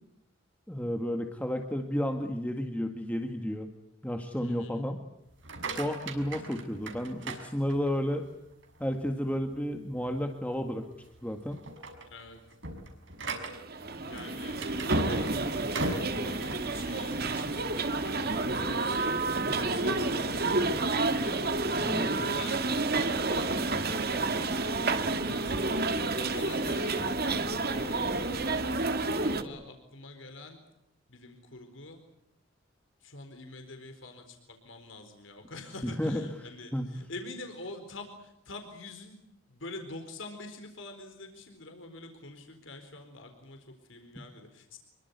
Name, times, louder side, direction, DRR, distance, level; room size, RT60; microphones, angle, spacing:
voice 1, 0.7-3.7 4.0-5.0 5.8-8.2 8.8-10.9 11.2-11.6 21.8-22.1 35.8-36.2 36.7-36.9, equal, 5° left, 4 dB, 1.9 m, -32 dB
voice 2, 4.4-4.8 12.1-12.4 14.1-21.6 21.9-24.3 24.7-27.2 27.7-30.6 31.1-32.0 33.0-39.2 39.5-44.8, left 2 dB, 80° left, 5 dB, 4.3 m, -46 dB
sound 1, 5.3-8.1 8.6-9.1 9.5-9.6 10.1-10.2 10.9-11.2 11.5-17.4, right 1 dB, 70° right, 6.1 m, -36 dB
sound 2, 13.5-29.4, right 3 dB, 50° right, 2.2 m, -30 dB
26.5 x 23.5 x 8.2 m, 0.86 s
head